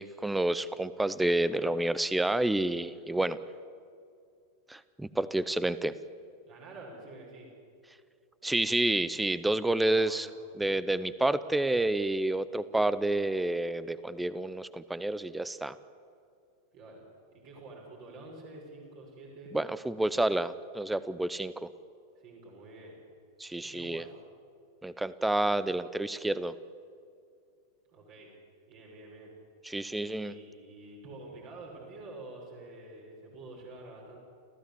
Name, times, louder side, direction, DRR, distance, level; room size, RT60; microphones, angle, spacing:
voice 1, 0.0-3.4 4.7-6.0 8.4-10.3 10.6-15.8 19.5-21.7 23.4-24.0 24.8-26.6 29.6-30.3, right 1 dB, 5° right, 16 dB, 0.9 m, -29 dB
voice 2, 6.5-7.5 9.6-10.2 16.7-19.5 22.2-23.0 23.6-24.1 27.9-28.3 28.7-29.3 30.2-34.2, right 2 dB, 45° right, -2 dB, 6.1 m, -48 dB
29.0 x 15.0 x 8.6 m, 2.3 s
figure-of-eight pair, 90°, 0 cm